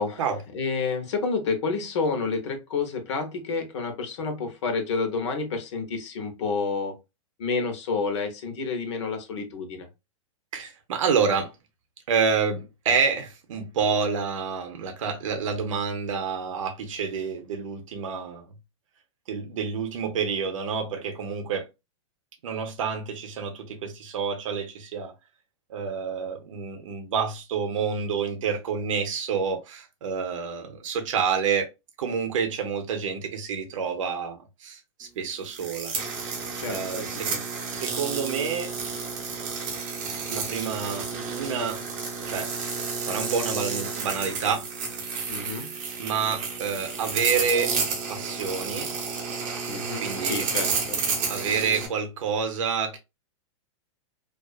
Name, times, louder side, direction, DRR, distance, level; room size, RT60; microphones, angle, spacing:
voice 1, 0.5-7.0 7.4-9.9 36.6-37.4 45.3-45.7 49.7-51.0, left 4 dB, 65° left, 0.8 m, -29 dB
voice 2, 10.5-11.5 12.1-18.5 19.3-21.7 22.4-25.1 25.7-31.7 32.0-35.9 36.7-37.3 37.7-38.7 40.3-41.8 42.3-42.5 43.0-44.7 45.6-47.8 48.1-49.0 49.6-49.7 50.0-50.5 51.3-53.0, right 6 dB, 85° right, 0.6 m, -28 dB
sound 1, 35.4-51.9, right 5 dB, 30° right, 0.6 m, -31 dB
2.4 x 2.3 x 2.3 m
supercardioid pair, 170°, 16 cm